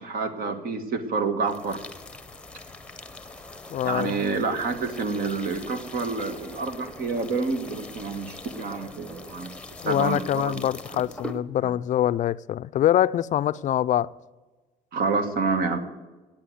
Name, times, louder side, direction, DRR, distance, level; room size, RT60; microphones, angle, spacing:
voice 1, 0.0-1.8 3.8-9.5 9.8-10.6 11.6-11.7 14.9-15.8, right 4 dB, 60° right, 1.5 m, -28 dB
sound 1, 1.4-11.4, left 2 dB, 5° left, 0.9 m, -42 dB
voice 2, 3.7-4.2 9.8-14.1, left 12 dB, 45° left, 0.4 m, -24 dB
9.9 x 8.7 x 7.7 m
cardioid pair, 110°, 17 cm